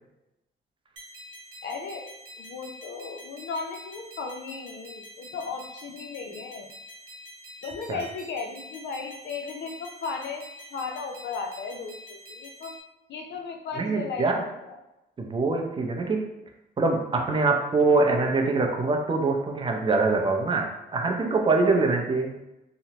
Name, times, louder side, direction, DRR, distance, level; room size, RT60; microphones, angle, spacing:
sound 1, 1.0-12.8, equal, 65° right, 1.1 m, -46 dB
voice 1, 1.6-2.1 2.4-6.7 7.6-10.4 10.7-12.8 13.1-14.8, left 4 dB, 65° left, 3 dB, 0.5 m, -36 dB
voice 2, 13.8-14.4 15.2-16.2 16.8-20.7 20.9-22.4, right 3 dB, 25° right, 2 dB, 0.5 m, -24 dB
2.9 x 2.0 x 2.8 m, 0.93 s
cardioid pair, 90°, 20 cm